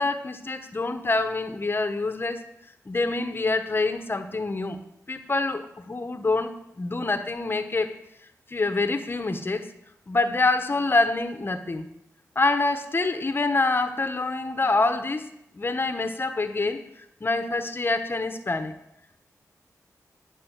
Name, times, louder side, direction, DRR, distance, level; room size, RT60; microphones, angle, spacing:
voice 1, 0.0-2.4 2.9-4.8 5.1-7.9 8.5-9.7 10.1-11.9 12.3-15.3 15.5-16.8 17.2-18.7, left 3 dB, 35° left, 8 dB, 1.2 m, -26 dB
12.0 x 5.6 x 8.9 m, 0.77 s
cardioid pair, 70°, 6 cm